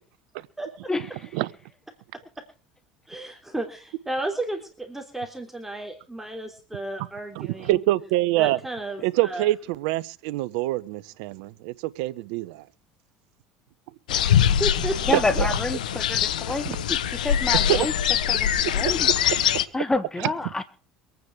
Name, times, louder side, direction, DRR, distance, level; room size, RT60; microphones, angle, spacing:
voice 1, 3.1-7.8 8.4-9.5 14.1-14.2 14.6-15.4, right 1 dB, 5° right, 3.3 m, -33 dB
voice 2, 7.4-8.6 9.0-12.6 15.1-15.5 17.7-17.8 19.3-19.4, right 16 dB, 75° right, 1.0 m, -25 dB
sound 1, 14.1-19.7, left 9 dB, 85° left, 0.9 m, -23 dB
voice 3, 15.1-17.9 18.3-19.1 19.7-20.6, left 2 dB, 15° left, 1.4 m, -28 dB
24.5 x 9.4 x 4.8 m
hypercardioid pair, 80°, 4 cm